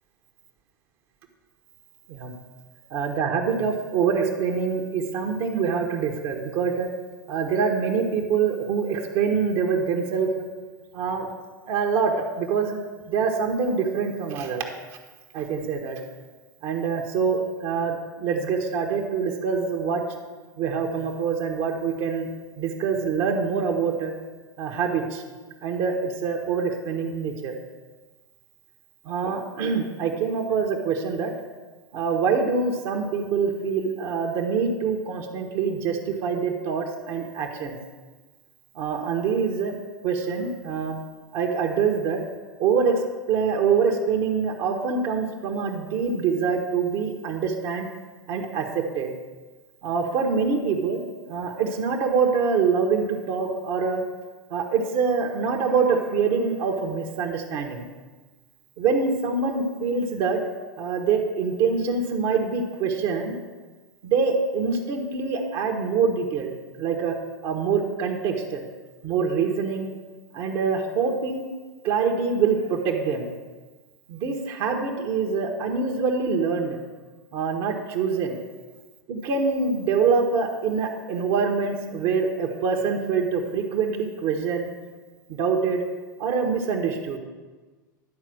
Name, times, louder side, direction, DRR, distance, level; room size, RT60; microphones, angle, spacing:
voice 1, 2.9-6.9 7.3-10.4 10.9-11.3 11.7-12.8 13.1-14.6 15.3-16.0 16.6-20.0 20.6-22.3 22.6-24.1 24.6-25.2 25.6-27.5 29.0-31.3 31.9-37.8 38.7-39.8 40.0-41.0 41.3-42.2 42.6-43.0 43.3-47.9 48.3-49.1 49.8-51.0 51.3-54.0 54.5-57.9 58.8-60.4 60.8-63.4 64.0-67.1 67.4-68.6 69.0-69.9 70.3-71.4 71.8-73.3 74.1-76.8 77.3-78.4 79.1-84.7 85.3-85.8 86.2-87.2, right 5 dB, 55° right, 3 dB, 1.2 m, -25 dB
11.0 x 4.2 x 6.3 m, 1.3 s
hypercardioid pair, 95°, 11 cm